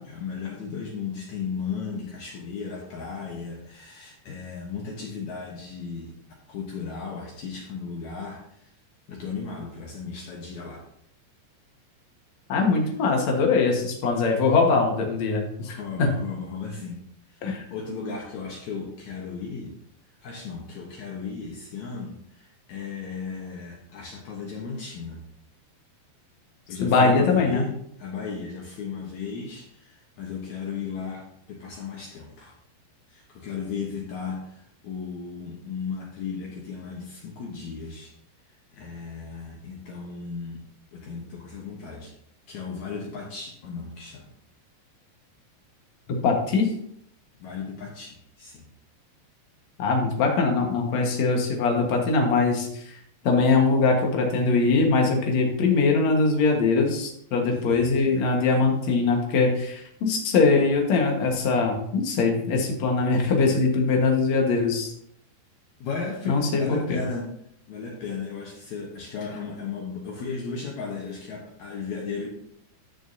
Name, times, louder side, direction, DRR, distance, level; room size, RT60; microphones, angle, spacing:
voice 1, 0.0-6.1 6.5-8.7 9.1-10.9 15.6-17.0 17.3-17.4 17.7-19.8 20.2-25.3 26.7-27.7 28.0-32.6 33.1-38.1 38.7-40.6 40.9-42.1 42.5-44.3 47.4-48.7 57.4-58.2 63.1-63.3 65.8-67.3 67.7-72.3, left 5 dB, 75° left, -1 dB, 1.7 m, -35 dB
voice 2, 12.5-16.2 17.4-17.6 26.8-27.6 46.1-46.7 49.8-52.9 53.2-64.9 66.3-66.8, left 4 dB, 60° left, 1 dB, 2.0 m, -22 dB
13.0 x 6.5 x 2.8 m, 0.69 s
omnidirectional pair, 5.0 m